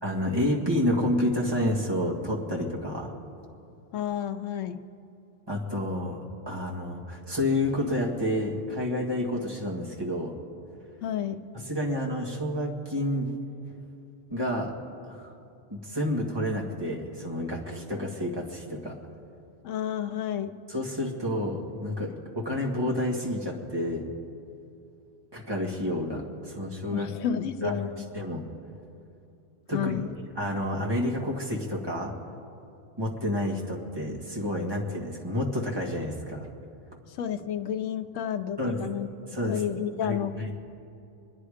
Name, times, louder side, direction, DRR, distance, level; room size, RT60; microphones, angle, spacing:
voice 1, 0.0-3.1 5.5-6.2 6.5-10.4 11.5-13.3 14.3-14.7 15.1-15.3 15.7-19.0 20.7-24.1 25.3-27.1 27.6-27.8 28.1-28.4 29.7-29.9 30.4-32.1 33.0-36.5 38.6-38.9 39.3-39.6 40.0-40.5, left 1 dB, 20° right, -2 dB, 1.8 m, -29 dB
voice 2, 3.9-4.8 11.0-11.4 19.6-20.6 26.9-28.1 29.7-30.1 37.1-39.1 39.5-40.3, left 9 dB, 85° left, 7 dB, 1.0 m, -31 dB
24.5 x 10.0 x 5.0 m, 2.8 s
omnidirectional pair, 1.3 m